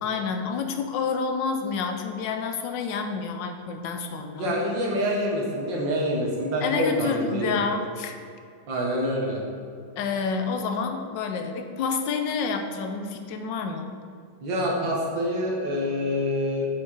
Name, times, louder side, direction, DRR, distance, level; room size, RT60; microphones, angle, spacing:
voice 1, 0.0-4.6 6.6-8.1 10.0-14.0, left 5 dB, 80° left, 6 dB, 1.3 m, -29 dB
voice 2, 4.3-7.6 8.7-9.4 14.4-16.7, equal, 85° right, -3 dB, 2.0 m, -26 dB
6.3 x 5.5 x 4.5 m, 2.3 s
omnidirectional pair, 2.0 m